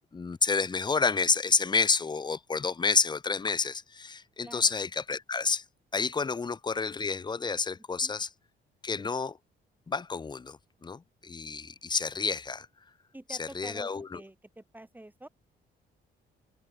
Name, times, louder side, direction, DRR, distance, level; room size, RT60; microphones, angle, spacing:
voice 1, 0.1-5.6 5.9-8.3 8.8-9.4 9.9-12.7 13.4-14.2, left 4 dB, 20° left, 0.7 m, -29 dB
voice 2, 4.4-4.7 8.0-8.1 13.1-15.3, right 1 dB, 10° right, 3.5 m, -47 dB
cardioid pair, 90°, 20 cm